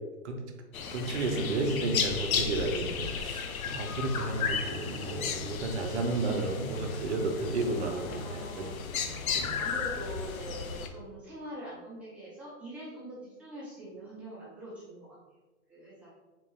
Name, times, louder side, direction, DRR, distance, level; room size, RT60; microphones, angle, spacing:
sound 1, 0.7-10.9, left 6 dB, 70° left, 0.6 m, -34 dB
voice 1, 0.9-8.2 8.6-8.7 9.0-9.1 9.3-9.5, right 2 dB, 50° right, 3 dB, 0.7 m, -32 dB
voice 2, 8.1-9.0 9.6-15.2 15.7-16.1, right 1 dB, 5° right, -11 dB, 0.7 m, -43 dB
3.7 x 2.5 x 3.1 m, 1.2 s
hypercardioid pair, 140°, 43 cm